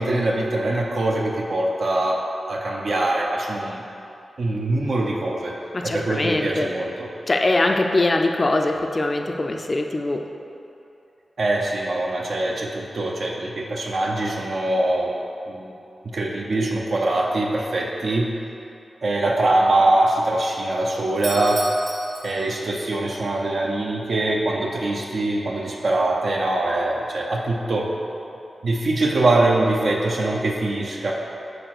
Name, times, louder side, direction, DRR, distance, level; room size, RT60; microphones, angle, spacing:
voice 1, 0.0-2.2 2.5-3.8 4.4-5.5 5.8-7.1 11.4-15.1 15.5-15.7 16.1-18.3 19.0-21.6 22.2-27.9 28.6-31.1, right 2 dB, 60° right, -1 dB, 0.8 m, -23 dB
voice 2, 5.7-6.7 7.3-10.2, left 2 dB, 35° left, 3 dB, 0.4 m, -22 dB
Doorbell, 21.1-23.0, right 2 dB, 85° right, 1.2 m, -35 dB
6.8 x 4.2 x 6.0 m, 2.8 s
wide cardioid pair, 105°, 0 cm